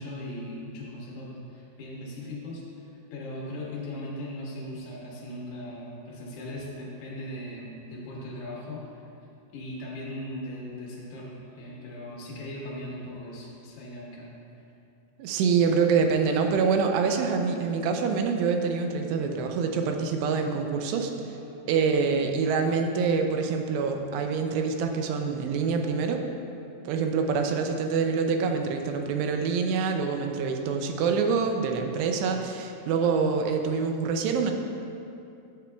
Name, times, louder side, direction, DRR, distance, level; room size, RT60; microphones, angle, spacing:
voice 1, 0.0-9.1 9.5-14.3 19.3-19.8 20.9-22.4 27.4-28.0, left 1 dB, 75° left, -4 dB, 3.4 m, -39 dB
voice 2, 15.2-21.3 21.7-26.2 26.9-34.5, right 5 dB, 85° right, 4 dB, 2.7 m, -26 dB
12.0 x 8.1 x 2.3 m, 2.7 s
omnidirectional pair, 4.9 m